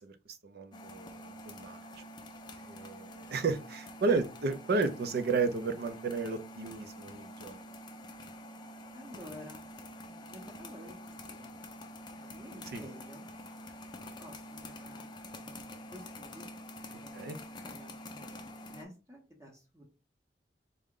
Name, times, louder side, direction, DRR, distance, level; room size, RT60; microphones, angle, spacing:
voice 1, 0.0-1.8 2.6-7.6 12.7-12.8 17.1-17.4, right 4 dB, 60° right, 10 dB, 0.5 m, -33 dB
sound 1, 0.7-18.8, left 1 dB, 25° left, 0.5 m, -47 dB
voice 2, 8.9-9.7 10.0-11.7 12.1-13.2 14.2-15.1 15.4-16.5 16.9-19.8, left 1 dB, 15° right, -1 dB, 0.7 m, -51 dB
3.7 x 2.1 x 3.6 m, 0.33 s
head